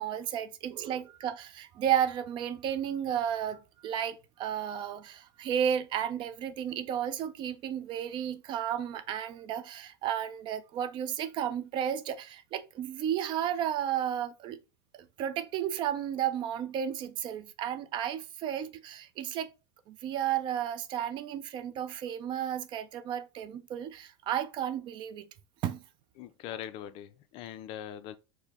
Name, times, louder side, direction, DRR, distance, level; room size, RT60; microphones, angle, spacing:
voice 1, 0.0-14.6 15.0-19.5 19.9-25.3 25.6-25.8, right 9 dB, 40° right, 0.4 m, -33 dB
voice 2, 26.1-28.2, left 10 dB, 45° left, 0.4 m, -41 dB
4.5 x 2.1 x 3.6 m
supercardioid pair, 120°, 13 cm